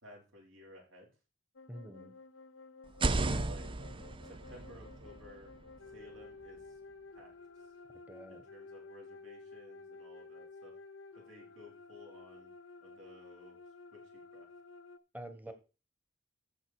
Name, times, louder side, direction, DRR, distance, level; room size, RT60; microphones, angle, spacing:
voice 1, 0.0-1.1 3.1-3.7 4.2-5.5 5.9-6.8 7.1-7.3 7.6-7.7 8.3-10.7 11.1-12.5 12.8-13.6 13.9-14.5 15.4-15.5, left 1 dB, 75° right, -2 dB, 4.9 m, -56 dB
sound 1, 1.6-15.0, left 3 dB, 90° left, 0.9 m, -53 dB
voice 2, 1.7-2.1 8.1-8.4 15.1-15.5, right 1 dB, 10° right, 10 dB, 1.2 m, -46 dB
sound 2, 2.8-6.7, right 2 dB, 25° right, 0.5 m, -36 dB
14.0 x 5.5 x 4.7 m, 0.32 s
head